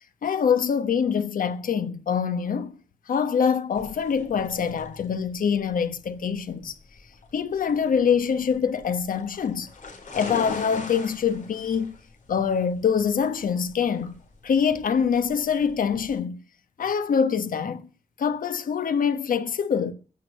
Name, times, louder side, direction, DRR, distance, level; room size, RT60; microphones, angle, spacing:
voice 1, 0.2-2.7 3.1-6.7 7.3-9.7 10.1-11.9 12.3-14.1 14.4-16.4 16.8-17.8 18.2-19.9, left 7 dB, 90° left, 1.2 m, -24 dB
sound 1, 3.7-16.1, left 3 dB, 70° left, 5.0 m, -41 dB
16.0 x 6.5 x 7.9 m
wide cardioid pair, 120°, 14 cm